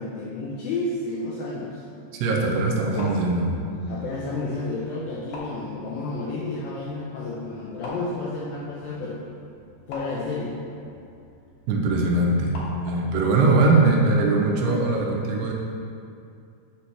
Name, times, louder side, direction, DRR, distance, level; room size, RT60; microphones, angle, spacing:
voice 1, 0.0-1.8 2.9-3.2 3.9-9.3 9.9-10.6 13.4-13.5, left 2 dB, 90° left, -5 dB, 2.0 m, -31 dB
voice 2, 2.2-3.6 11.7-12.6 12.9-15.5, right 3 dB, 80° right, -1 dB, 2.7 m, -21 dB
sound 1, 2.7-13.2, left 2 dB, 65° left, 2.0 m, -44 dB
8.6 x 5.7 x 3.2 m, 2.4 s
omnidirectional pair, 4.9 m